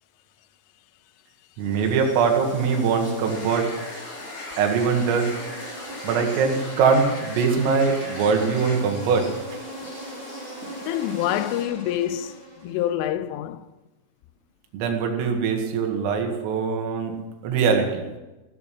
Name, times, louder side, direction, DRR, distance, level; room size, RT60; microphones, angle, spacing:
sound 1, 1.6-11.6, left 1 dB, 20° left, 2.7 m, -42 dB
voice 1, 1.6-3.7 4.6-5.3 6.0-9.3 14.7-17.2 17.4-18.1, right 5 dB, 85° right, 4.6 m, -22 dB
sound 2, 3.3-8.7, left 2 dB, 50° left, 5.3 m, -39 dB
Insect, 4.7-12.9, right 1 dB, 25° right, 3.6 m, -39 dB
voice 2, 10.8-12.4 12.6-13.7, left 12 dB, 80° left, 3.0 m, -26 dB
16.0 x 13.5 x 5.9 m
omnidirectional pair, 5.8 m